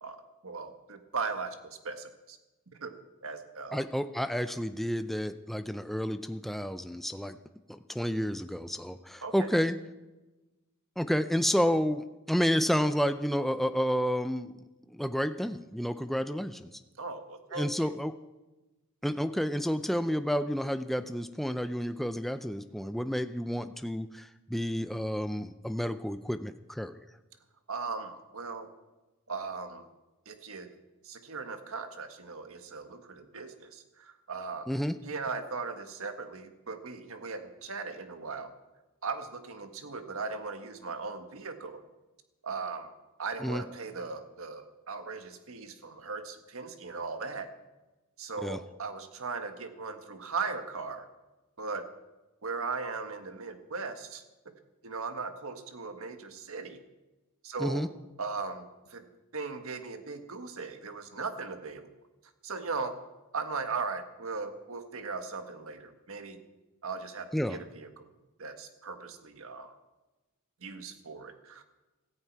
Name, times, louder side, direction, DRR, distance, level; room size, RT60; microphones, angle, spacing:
voice 1, 0.0-2.4 2.7-2.9 3.2-3.9 9.2-9.5 17.0-17.9 27.7-28.7 29.3-29.8 30.2-30.7 31.0-34.7 35.0-38.5 39.0-41.8 42.4-42.9 43.2-47.5 48.2-51.1 51.6-51.9 52.4-54.2 54.8-56.8 57.4-57.8 58.2-59.0 59.3-61.9 62.4-62.9 63.3-66.4 66.8-68.1 68.4-69.7 70.6-71.6, right 4 dB, 65° right, 7 dB, 1.6 m, -38 dB
voice 2, 3.7-7.4 7.7-9.8 11.0-14.5 14.9-16.7 17.5-18.1 19.0-26.9 34.7-34.9 43.4-43.6 48.4-48.6 57.6-57.9 67.3-67.6, equal, ahead, 10 dB, 0.5 m, -30 dB
16.5 x 14.5 x 4.7 m, 1.1 s
head